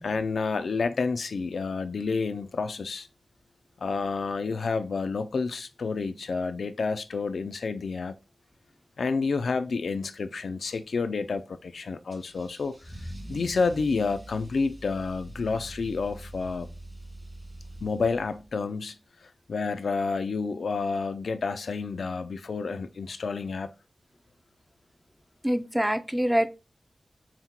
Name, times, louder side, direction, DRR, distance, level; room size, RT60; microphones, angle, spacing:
voice 1, 0.0-3.1 3.8-8.1 9.0-16.7 17.8-23.7, left 4 dB, 90° left, 0.3 m, -30 dB
Car / Engine starting / Accelerating revving vroom, 12.1-18.6, right 1 dB, 35° right, 2.0 m, -44 dB
voice 2, 25.4-26.5, equal, 10° right, 0.4 m, -25 dB
5.7 x 2.1 x 2.9 m
cardioid pair, 55°, 0 cm